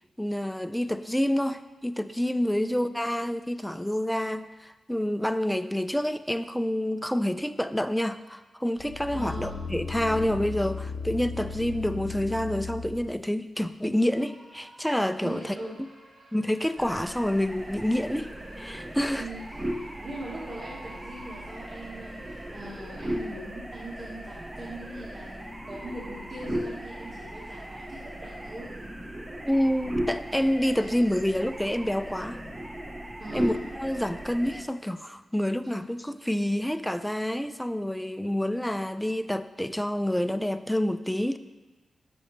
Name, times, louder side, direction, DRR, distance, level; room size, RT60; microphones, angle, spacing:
voice 1, 0.2-15.6 16.3-18.3 18.6-19.3 29.4-32.4 33.3-41.4, left 1 dB, 5° left, 11 dB, 0.4 m, -28 dB
sound 1, 8.8-13.2 13.7-13.8, left 4 dB, 75° left, 0.6 m, -36 dB
voice 2, 9.1-9.6 15.2-15.8 18.9-19.6 19.9-28.7 30.8-30.9 33.2-33.6 35.7-35.8, right 1 dB, 55° right, -8 dB, 2.3 m, -41 dB
sound 2, 13.8-23.7, right 2 dB, 85° right, 1.8 m, -55 dB
sound 3, 16.8-34.6, right 1 dB, 20° right, 0.7 m, -37 dB
10.5 x 6.9 x 3.2 m, 1.2 s
cardioid pair, 80°, 0 cm